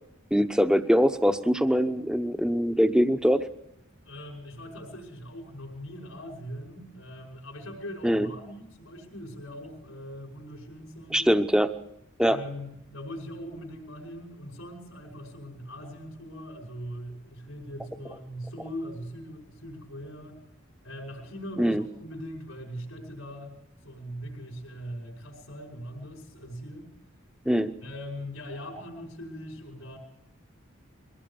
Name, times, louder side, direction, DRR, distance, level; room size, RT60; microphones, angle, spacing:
voice 1, 0.3-3.5 8.0-8.3 11.1-11.7 12.2-12.4 21.6-21.8 27.5-27.7, equal, 5° right, 9 dB, 0.8 m, -23 dB
voice 2, 4.0-11.4 12.2-20.4 20.8-23.5 23.8-26.9 27.8-30.0, equal, 85° left, 1 dB, 5.0 m, -41 dB
23.0 x 17.5 x 7.0 m, 0.86 s
head